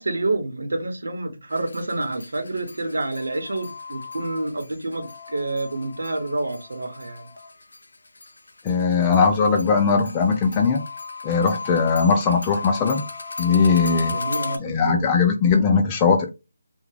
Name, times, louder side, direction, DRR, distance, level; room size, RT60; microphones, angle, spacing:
voice 1, 0.0-7.3 14.1-15.0, right 2 dB, 85° right, 1.0 m, -28 dB
sound 1, 1.5-7.8 8.2-14.6, left 4 dB, 85° left, 0.5 m, -35 dB
voice 2, 8.6-10.8 11.2-13.0 13.4-14.2 14.6-16.3, left 5 dB, 15° left, 0.3 m, -19 dB
3.5 x 2.3 x 3.3 m
figure-of-eight pair, 165°, 0 cm